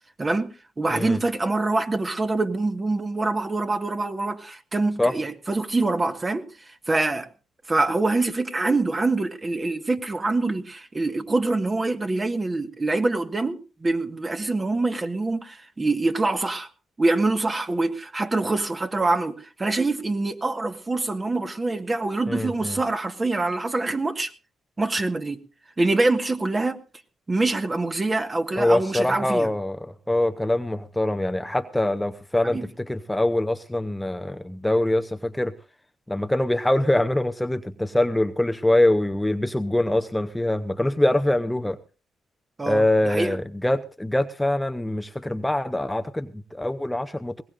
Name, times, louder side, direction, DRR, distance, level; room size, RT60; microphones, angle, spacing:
voice 1, 0.2-6.4 6.9-7.3 7.7-16.7 17.0-24.3 24.8-25.4 25.8-26.8 27.3-29.5 32.4-32.7 42.6-43.4, right 2 dB, 30° right, 1.5 m, -25 dB
voice 2, 0.9-1.2 5.0-5.1 22.3-22.8 28.6-35.5 36.1-41.8 42.6-47.4, left 1 dB, 10° left, 0.8 m, -24 dB
20.5 x 17.5 x 2.5 m
supercardioid pair, 70°, 0 cm